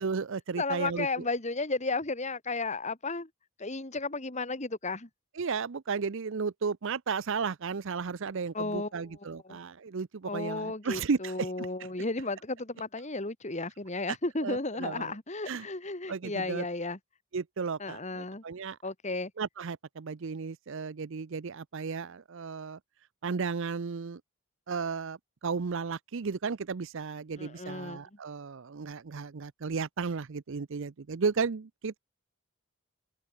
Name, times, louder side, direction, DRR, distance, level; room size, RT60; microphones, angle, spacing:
voice 1, 0.0-1.1 5.4-11.7 14.4-15.1 15.5-15.7 16.1-16.6 17.3-18.8 19.4-22.8 23.2-24.2 24.7-32.0, right 5 dB, 55° right, 0.5 m, -34 dB
voice 2, 0.6-3.3 3.6-5.1 8.5-8.9 9.4-9.6 10.2-17.0 17.8-18.4 18.8-19.3 27.4-28.0, left 3 dB, 30° left, 1.8 m, -34 dB
head